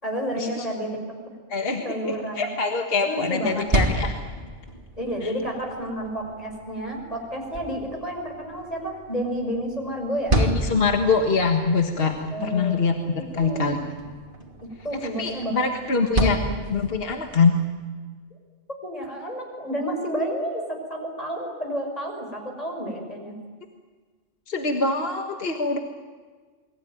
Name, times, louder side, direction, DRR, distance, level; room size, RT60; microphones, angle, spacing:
voice 1, 0.0-1.0 1.8-2.5 3.0-3.6 5.0-10.4 12.3-12.8 13.3-13.8 14.6-15.7 16.1-16.5 18.7-23.4, equal, 30° left, 2 dB, 6.1 m, -30 dB
voice 2, 1.5-4.2 5.2-5.3 10.3-12.2 12.4-13.8 15.0-16.4 16.7-17.6 24.5-25.8, left 4 dB, 50° left, 3 dB, 1.8 m, -24 dB
sound 1, 3.4-17.4, right 1 dB, 45° right, 2.9 m, -31 dB
29.0 x 21.5 x 9.3 m, 1.5 s
omnidirectional pair, 1.3 m